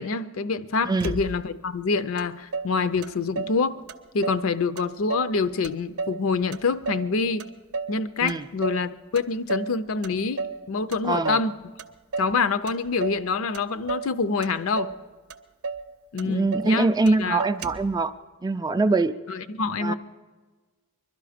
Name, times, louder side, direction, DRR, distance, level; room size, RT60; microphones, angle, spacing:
voice 1, 0.0-3.8 4.1-7.5 7.9-11.5 12.2-14.9 16.1-16.9 17.2-17.4 19.3-19.9, left 4 dB, 65° left, 13 dB, 0.5 m, -26 dB
voice 2, 0.8-1.2 8.2-8.5 11.0-11.4 16.2-18.1 18.4-19.1 19.8-19.9, right 3 dB, 20° right, 10 dB, 0.3 m, -23 dB
Motor vehicle (road), 1.0-1.7 2.2-2.3 2.5-3.6 3.9-4.5 4.8-5.4 5.6-7.1 7.4-8.0 8.3-8.9 9.2-9.7 10.0-10.6 10.9-11.5 11.8-12.4 12.7-13.3 13.5-14.1 14.4-15.0 15.3-15.4 15.6-15.9 16.2-16.8 17.1-17.2 17.4-17.9, right 4 dB, 75° right, 0.7 m, -32 dB
21.5 x 12.0 x 5.0 m, 1.4 s
head